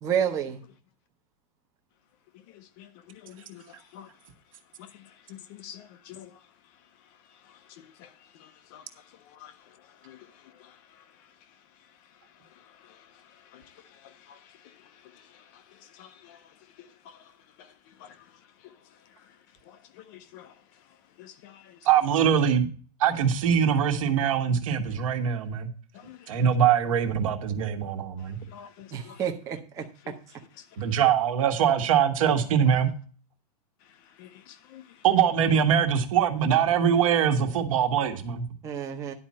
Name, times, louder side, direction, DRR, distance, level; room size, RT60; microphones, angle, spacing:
voice 1, 0.0-0.6 28.9-29.9 38.6-39.1, right 8 dB, 15° right, 0.8 m, -29 dB
voice 2, 2.5-4.1 4.8-6.5 7.3-11.3 12.2-19.4 19.6-20.6 21.2-21.8 25.9-26.4 28.2-29.2 29.8-30.2 30.6-30.9 33.8-35.0, left 10 dB, 30° left, 0.6 m, -51 dB
voice 3, 21.8-22.7 23.0-25.7 26.3-28.4 30.8-32.9 35.0-38.5, right 8 dB, 55° right, 1.5 m, -23 dB
11.0 x 4.3 x 7.4 m
supercardioid pair, 165°, 20 cm